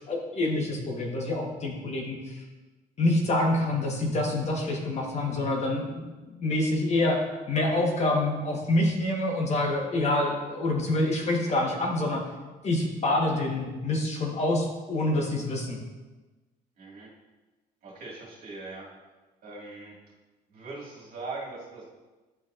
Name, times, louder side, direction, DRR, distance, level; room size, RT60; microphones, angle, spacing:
voice 1, 0.1-2.4 3.0-7.2 7.5-12.2 12.6-15.8, left 2 dB, 40° left, 0 dB, 1.3 m, -27 dB
voice 2, 16.8-17.1 17.8-18.9 19.4-19.9 20.5-21.8, right 3 dB, 60° right, -4 dB, 2.0 m, -40 dB
10.5 x 4.1 x 2.5 m, 1.2 s
cardioid pair, 110°, 17 cm